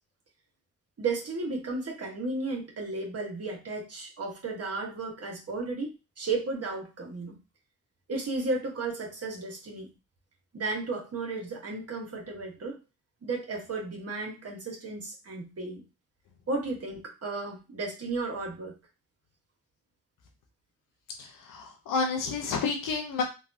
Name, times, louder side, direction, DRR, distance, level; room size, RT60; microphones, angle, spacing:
voice 1, 1.0-5.9 6.2-7.4 8.1-9.9 10.5-12.8 13.2-15.8 16.5-18.7, right 3 dB, 50° right, 0 dB, 1.3 m, -34 dB
voice 2, 21.2-23.2, left 4 dB, 85° left, 3 dB, 0.8 m, -30 dB
3.3 x 2.3 x 2.6 m, 0.28 s
cardioid pair, 65°, 32 cm